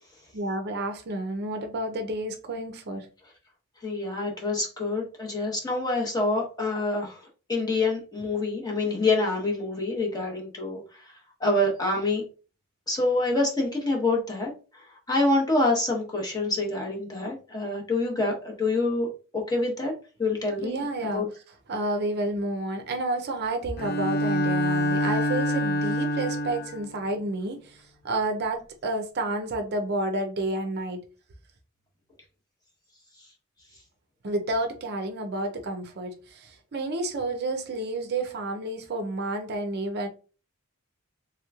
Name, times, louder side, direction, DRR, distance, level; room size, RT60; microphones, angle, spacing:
voice 1, 0.3-3.1 20.6-21.2 21.7-27.8 28.0-31.0 34.2-40.1, right 2 dB, 50° right, 0.5 m, -30 dB
voice 2, 3.8-7.2 7.5-10.8 11.4-12.2 12.9-14.5 15.1-19.9 20.2-21.3, left 2 dB, 20° left, 1.0 m, -26 dB
Bowed string instrument, 23.8-26.9, equal, 45° left, 0.5 m, -26 dB
3.3 x 2.9 x 2.3 m
head